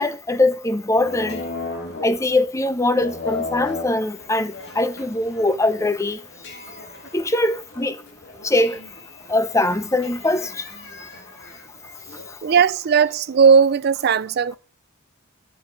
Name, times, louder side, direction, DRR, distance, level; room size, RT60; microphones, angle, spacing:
voice 1, 0.0-1.4 2.0-6.2 7.1-8.0 8.4-8.8 9.3-10.6, left 2 dB, 15° left, 0.6 m, -22 dB
sound 1, 1.0-12.3, left 3 dB, 55° left, 1.8 m, -36 dB
voice 2, 12.4-14.6, right 6 dB, 50° right, 0.4 m, -17 dB
8.8 x 4.8 x 7.3 m
head